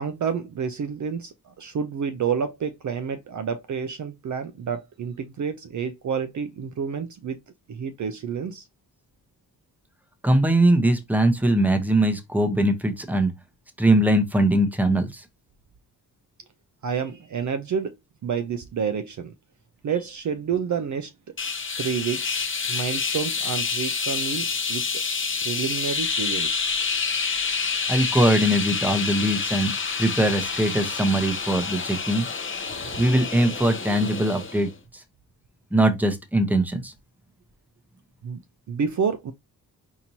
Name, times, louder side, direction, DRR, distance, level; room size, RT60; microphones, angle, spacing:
voice 1, 0.0-7.4 7.7-8.7 16.8-17.9 18.2-19.3 19.8-21.1 21.8-22.4 22.7-25.0 25.4-26.7 38.2-38.4 38.7-39.3, right 6 dB, 50° right, 0.5 m, -29 dB
voice 2, 10.2-13.3 13.8-15.2 27.9-29.7 30.0-32.3 33.0-34.7 34.9-35.0 35.7-36.9, right 1 dB, 5° right, 0.8 m, -21 dB
sound 1, 21.4-34.7, left 5 dB, 30° left, 0.7 m, -28 dB
4.3 x 2.8 x 2.7 m
cardioid pair, 95°, 38 cm